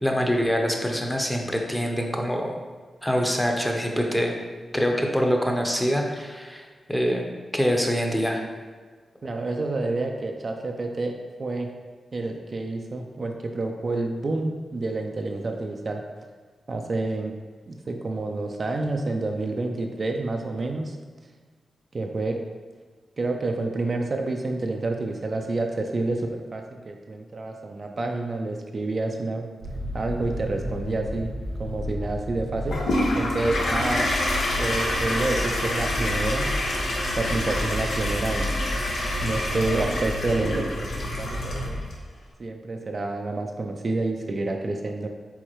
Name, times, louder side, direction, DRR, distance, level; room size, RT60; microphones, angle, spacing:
voice 1, 0.0-2.6 3.0-4.3 4.7-7.2 7.5-8.4, equal, 5° left, 1 dB, 0.7 m, -24 dB
voice 2, 9.2-11.1 11.4-11.7 12.1-16.0 16.7-17.3 17.7-21.0 21.9-22.4 23.2-29.4 29.9-31.3 31.6-32.8 33.1-34.1 34.6-36.5 37.2-38.5 39.2-41.8 42.4-45.1, right 2 dB, 55° right, 3 dB, 0.4 m, -28 dB
sound 1, 29.6-41.8, equal, 85° right, 1.3 m, -32 dB
Toilet flush, 32.7-41.9, left 1 dB, 85° left, 0.7 m, -28 dB
4.7 x 3.5 x 3.0 m, 1.5 s
cardioid pair, 50°, 0 cm